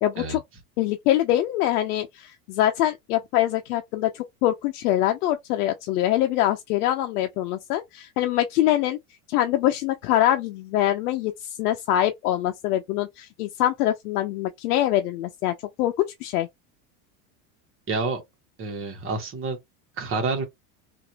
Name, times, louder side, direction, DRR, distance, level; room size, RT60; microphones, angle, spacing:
voice 1, 0.0-0.4 0.8-9.0 9.3-16.5, left 13 dB, 85° left, 0.6 m, -24 dB
voice 2, 17.9-18.2 18.6-19.6 20.0-20.4, right 4 dB, 30° right, 1.2 m, -28 dB
2.9 x 2.6 x 2.7 m
supercardioid pair, 140°, 44 cm